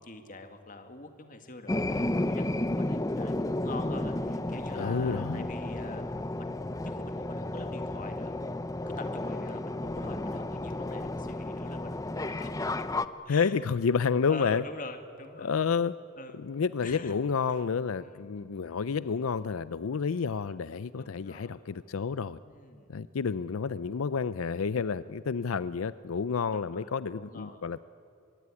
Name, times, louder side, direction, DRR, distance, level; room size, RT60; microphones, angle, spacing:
voice 1, 0.0-6.0 6.4-8.4 9.0-12.8 13.3-13.6 14.3-15.5 16.2-16.5 16.8-17.2 17.5-17.6 18.0-18.4 21.0-21.7 22.4-23.1 26.5-27.6, left 3 dB, 40° left, 7 dB, 2.0 m, -45 dB
sound 1, 1.7-13.1, left 1 dB, 15° left, 0.6 m, -32 dB
voice 2, 4.7-5.5 13.3-14.6 15.4-15.9 16.4-22.4 22.9-27.8, left 5 dB, 85° left, 15 dB, 0.5 m, -30 dB
24.5 x 22.5 x 9.8 m, 2.7 s
head